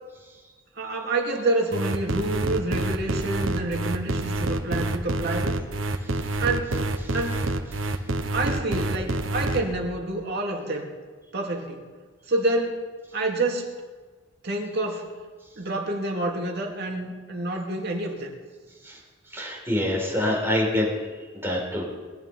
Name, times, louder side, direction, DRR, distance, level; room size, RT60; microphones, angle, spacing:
voice 1, 0.8-5.6 6.4-6.8 7.1-7.5 8.3-10.9 11.3-11.8 12.3-12.8 13.1-13.7 14.4-15.1 15.6-18.3, right 2 dB, 55° right, 1 dB, 2.6 m, -28 dB
sound 1, 1.7-9.6, right 2 dB, 85° right, 1.3 m, -27 dB
voice 2, 19.3-21.0 21.4-21.8, left 1 dB, 10° right, -2 dB, 4.4 m, -25 dB
21.0 x 11.0 x 5.6 m, 1.4 s
head